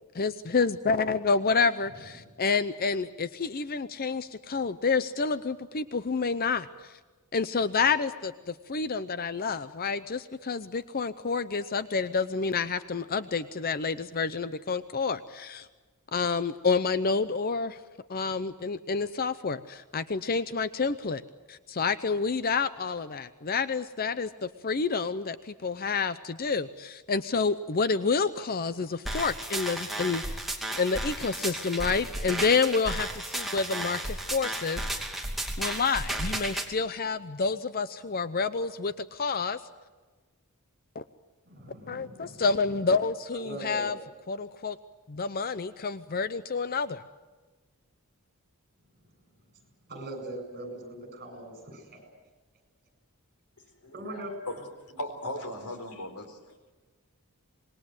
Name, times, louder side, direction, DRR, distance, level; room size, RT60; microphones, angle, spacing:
voice 1, 0.1-6.9 7.3-15.7 16.1-17.8 18.1-21.2 21.5-30.5 30.8-34.8 35.6-39.6 40.9-41.0 41.9-44.0 44.3-44.8 45.1-47.0, left 4 dB, 40° left, 13 dB, 0.7 m, -29 dB
sound 1, 29.1-36.7, right 1 dB, ahead, 2.8 m, -33 dB
voice 2, 41.5-42.5 43.3-44.0 49.9-52.0 53.9-54.6, right 1 dB, 45° right, 6 dB, 7.8 m, -41 dB
voice 3, 53.8-54.6 55.0-56.4, left 1 dB, 90° left, 6 dB, 4.2 m, -37 dB
26.0 x 21.0 x 8.0 m, 1.3 s
head